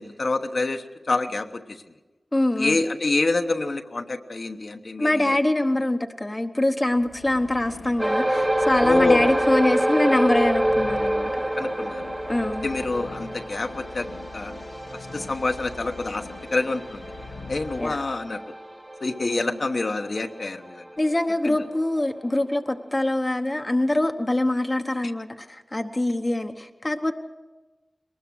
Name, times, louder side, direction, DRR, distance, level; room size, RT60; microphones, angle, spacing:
voice 1, 0.0-1.8 2.6-5.4 8.8-9.5 11.6-12.0 12.6-14.1 14.3-14.5 15.1-17.1 17.5-18.4 19.0-20.8 21.4-21.7, left 3 dB, 55° left, 4 dB, 1.1 m, -26 dB
voice 2, 2.3-2.8 5.0-11.4 12.3-12.7 17.8-18.0 19.2-19.6 21.0-27.1, left 1 dB, 25° left, 6 dB, 1.1 m, -24 dB
sound 1, 6.8-18.5, left 3 dB, 90° left, 1.4 m, -42 dB
sound 2, 8.0-20.7 21.0-21.2 21.8-21.9, right 1 dB, 20° right, 1.0 m, -27 dB
22.5 x 20.0 x 6.3 m, 1.2 s
wide cardioid pair, 80°, 0 cm